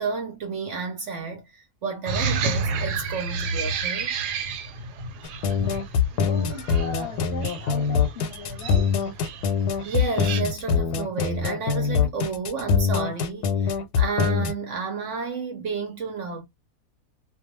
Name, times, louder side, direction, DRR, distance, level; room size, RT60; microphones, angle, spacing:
voice 1, 0.0-4.1 9.8-16.4, right 4 dB, 60° right, 0.9 m, -31 dB
sound 1, 2.0-10.4, right 4 dB, 85° right, 1.2 m, -31 dB
sound 2, 5.2-14.5, left 6 dB, 90° left, 1.1 m, -23 dB
voice 2, 6.1-9.0, left 4 dB, 55° left, 0.8 m, -37 dB
2.5 x 2.2 x 2.9 m
omnidirectional pair, 1.7 m